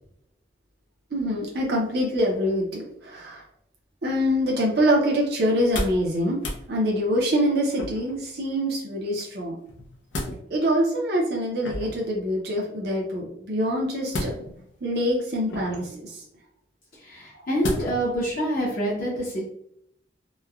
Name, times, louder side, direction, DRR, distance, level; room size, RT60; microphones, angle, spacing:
voice 1, 1.1-3.4 4.0-6.4 6.7-9.6 10.5-14.3 14.8-15.9, equal, 55° right, -2 dB, 0.6 m, -24 dB
sound 1, 5.5-6.1 6.4-6.6 7.7-8.2 9.7-10.4 11.6-12.1 14.1-14.7 15.5-16.0 17.6-18.1 18.6-18.7, left 1 dB, 85° left, 0.6 m, -32 dB
voice 2, 17.0-19.4, equal, 50° left, -6 dB, 0.7 m, -26 dB
3.0 x 2.1 x 2.3 m, 0.72 s
head